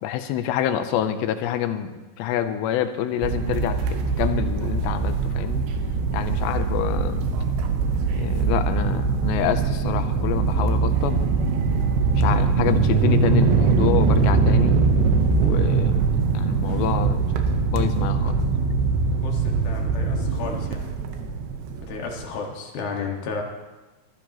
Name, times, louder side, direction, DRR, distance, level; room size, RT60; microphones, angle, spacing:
voice 1, 0.0-5.6 6.1-7.2 8.1-11.2 12.1-14.8 15.4-17.3 17.7-18.4, left 10 dB, 90° left, 9 dB, 2.9 m, -27 dB
sound 1, 3.2-22.2, right 4 dB, 85° right, 3.3 m, -22 dB
voice 2, 19.2-20.9 21.9-23.4, left 4 dB, 65° left, 0 dB, 3.3 m, -33 dB
24.0 x 12.5 x 3.0 m, 1.1 s
omnidirectional pair, 5.0 m